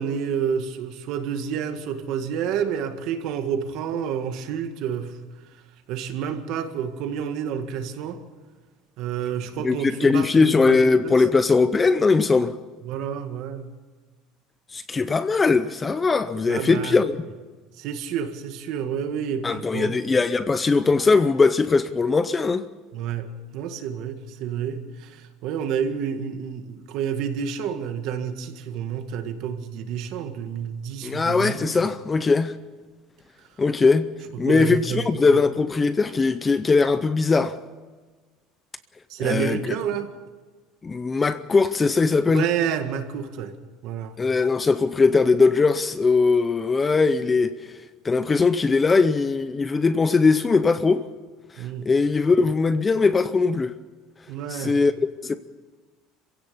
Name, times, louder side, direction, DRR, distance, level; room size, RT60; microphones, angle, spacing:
voice 1, 0.0-5.2 5.9-8.2 9.0-11.2 12.8-13.6 16.5-17.0 17.8-20.2 22.9-31.9 34.4-35.1 35.3-35.4 39.1-40.1 42.3-43.5 43.8-44.2 51.6-51.9 54.3-54.8, right 8 dB, 50° right, 1.9 m, -29 dB
voice 2, 9.6-12.5 14.7-17.2 19.4-22.7 31.0-32.6 33.6-34.1 34.4-37.6 39.2-39.8 40.8-42.5 44.2-47.7 48.0-51.0 51.6-53.7 54.5-54.9 55.2-55.4, left 4 dB, 15° left, 0.5 m, -20 dB
27.0 x 16.5 x 7.1 m
cardioid pair, 180°, 0 cm